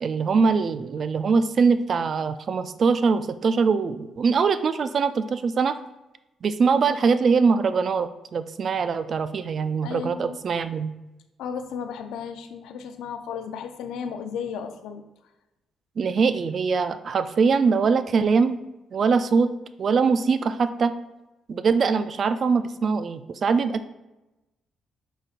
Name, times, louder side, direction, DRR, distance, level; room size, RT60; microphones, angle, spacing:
voice 1, 0.0-5.8 6.4-10.9 16.0-18.6 18.9-19.5 19.8-20.9 21.5-23.9, right 5 dB, 50° right, 12 dB, 0.3 m, -22 dB
voice 2, 9.8-10.4 11.4-15.0, left 7 dB, 85° left, 8 dB, 0.4 m, -34 dB
5.1 x 4.0 x 2.5 m, 0.99 s
cardioid pair, 90°, 0 cm